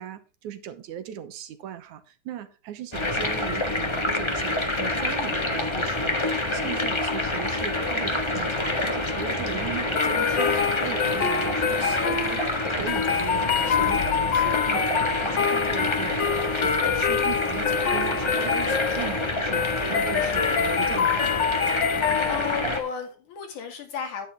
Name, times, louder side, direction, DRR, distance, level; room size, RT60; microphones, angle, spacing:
voice 1, 0.0-6.2 6.5-21.4, right 10 dB, 75° right, 2.4 m, -38 dB
sound 1, 2.9-22.8, left 2 dB, 25° left, 0.5 m, -27 dB
sound 2, 9.9-22.7, left 7 dB, 55° left, 1.3 m, -26 dB
voice 2, 21.7-24.3, left 6 dB, 80° left, 3.8 m, -34 dB
10.0 x 9.8 x 3.6 m
omnidirectional pair, 3.5 m